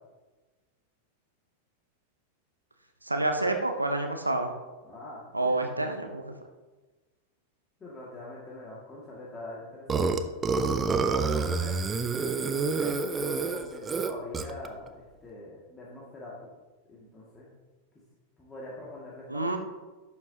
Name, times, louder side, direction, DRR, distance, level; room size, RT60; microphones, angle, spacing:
voice 1, 3.0-4.5 5.3-6.3 19.3-19.6, right 2 dB, 85° right, 5 dB, 0.8 m, -28 dB
voice 2, 4.8-5.7 7.8-10.3 10.8-11.8 12.3-16.5 16.9-17.5 18.4-19.6, left 1 dB, 20° left, -6 dB, 2.1 m, -43 dB
Burping eructation, 9.9-14.7, right 4 dB, 20° right, 0.6 m, -28 dB
11.5 x 8.3 x 2.9 m, 1.2 s
figure-of-eight pair, 90°, 0 cm